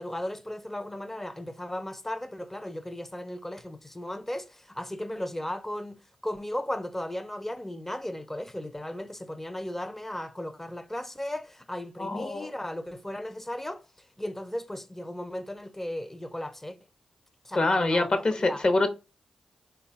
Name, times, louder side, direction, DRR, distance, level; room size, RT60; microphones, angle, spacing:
voice 1, 0.0-16.8 17.4-18.6, left 1 dB, 15° left, 0.5 m, -36 dB
voice 2, 12.0-12.5 17.5-18.9, left 2 dB, 45° left, 0.9 m, -25 dB
3.7 x 2.3 x 3.4 m
supercardioid pair, 40°, 2 cm